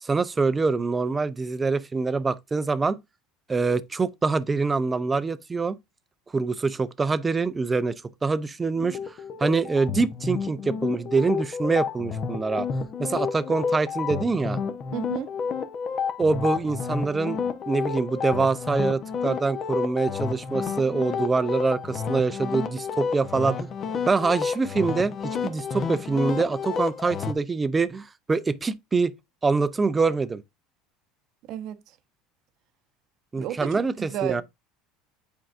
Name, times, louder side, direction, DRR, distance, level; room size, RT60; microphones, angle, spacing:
voice 1, 0.0-3.0 3.5-5.8 6.3-12.7 13.0-14.6 16.2-17.4 17.7-23.7 24.1-29.1 29.4-30.4 33.3-34.4, right 4 dB, 15° right, 0.5 m, -25 dB
sound 1, 8.8-27.3, left 6 dB, 40° left, 0.9 m, -30 dB
voice 2, 14.9-15.3 31.5-31.8 33.4-34.4, right 11 dB, 60° right, 0.8 m, -32 dB
8.7 x 4.6 x 2.5 m
supercardioid pair, 120°, 0 cm